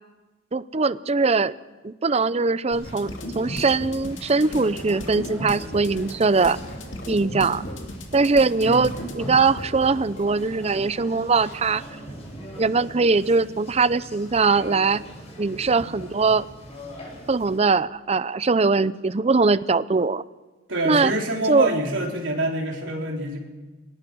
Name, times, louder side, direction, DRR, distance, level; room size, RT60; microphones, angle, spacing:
voice 1, 0.5-1.5 1.8-6.6 7.1-7.6 8.1-11.8 12.6-15.0 15.4-16.5 17.3-20.2 20.8-21.1 21.5-21.7, right 4 dB, 35° right, 16 dB, 0.6 m, -21 dB
Conversation, 2.7-17.6, right 1 dB, 35° left, 6.4 m, -41 dB
sound 1, 2.8-10.2, left 1 dB, 80° left, 2.7 m, -36 dB
voice 2, 20.7-23.4, right 1 dB, 85° right, 0 dB, 3.9 m, -26 dB
23.0 x 19.5 x 6.3 m, 1.2 s
head